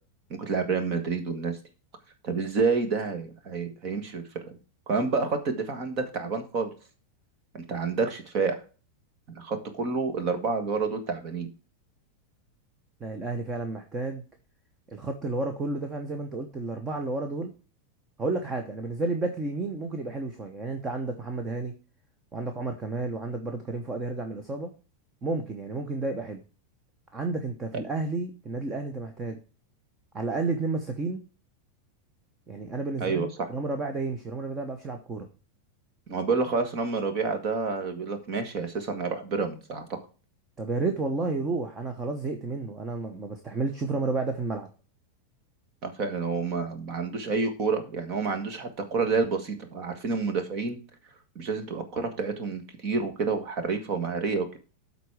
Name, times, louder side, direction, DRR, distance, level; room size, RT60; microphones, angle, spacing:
voice 1, 0.3-1.6 2.2-4.2 4.9-6.7 7.5-8.6 9.3-11.5 33.0-33.5 36.1-39.9 45.8-50.8 51.4-54.6, right 4 dB, 40° right, 7 dB, 1.6 m, -29 dB
voice 2, 13.0-14.2 14.9-17.5 18.2-21.7 22.3-24.7 25.2-26.4 27.1-29.4 30.1-31.2 32.5-35.3 40.6-44.7, right 3 dB, 15° right, 5 dB, 0.9 m, -31 dB
12.0 x 4.1 x 4.8 m, 0.35 s
supercardioid pair, 150°, 0 cm